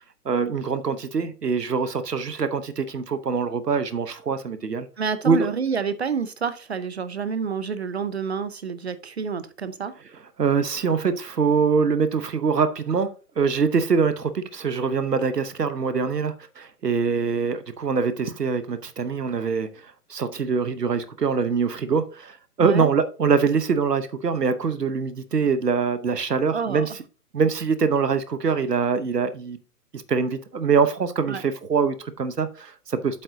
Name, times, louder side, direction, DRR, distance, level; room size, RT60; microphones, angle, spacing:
voice 1, 0.2-4.9 5.2-5.5 10.4-13.1 13.4-19.7 20.1-26.9 27.3-29.6 30.1-33.2, right 5 dB, 80° right, 1.0 m, -24 dB
voice 2, 5.0-9.9 22.6-22.9 26.5-26.9 31.3-31.4, right 6 dB, 45° right, 0.5 m, -28 dB
8.0 x 7.6 x 2.7 m
figure-of-eight pair, 130°, 48 cm